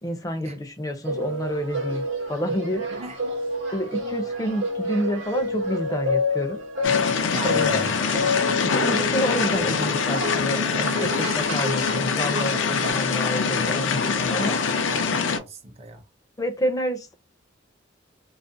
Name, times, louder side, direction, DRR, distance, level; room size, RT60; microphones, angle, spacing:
voice 1, 0.0-2.8 3.7-6.6 7.4-7.8 8.7-14.6 16.4-17.1, equal, 20° left, 0.5 m, -28 dB
sound 1, 1.0-12.9, left 2 dB, 85° right, 0.8 m, -29 dB
voice 2, 2.9-3.4 7.3-8.0 14.4-16.0, right 2 dB, 35° right, 0.5 m, -38 dB
sound 2, 6.8-15.4, left 5 dB, 80° left, 0.5 m, -24 dB
2.4 x 2.0 x 2.6 m
head